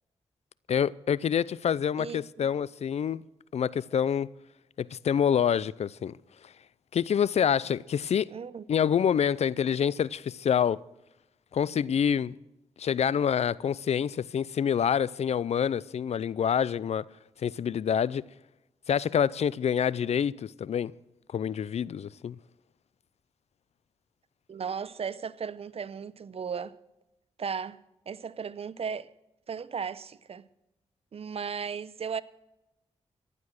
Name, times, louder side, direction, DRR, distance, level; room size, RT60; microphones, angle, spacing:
voice 1, 0.7-3.2 3.5-4.3 4.8-6.1 6.9-8.3 8.7-10.8 11.5-12.3 12.8-17.0 17.4-18.2 18.9-20.9 21.3-22.4, left 8 dB, 70° left, 0.5 m, -27 dB
voice 2, 2.0-2.5 8.3-8.6 24.5-26.7 27.4-29.1 29.5-30.5 31.1-32.2, right 6 dB, 60° right, 0.7 m, -36 dB
15.0 x 11.0 x 6.4 m
cardioid pair, 65°, 11 cm